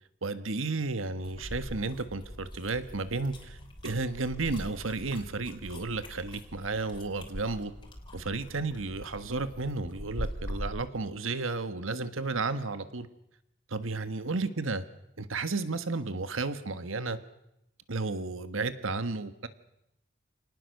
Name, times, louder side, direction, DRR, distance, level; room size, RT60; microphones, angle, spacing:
voice 1, 0.2-3.6 3.8-7.7 8.1-13.1 13.7-14.8 15.2-17.2 17.9-19.5, right 3 dB, 90° right, 11 dB, 1.5 m, -33 dB
sound 1, 1.2-10.9, equal, 25° left, 3.5 m, -42 dB
28.5 x 19.0 x 6.6 m, 0.83 s
head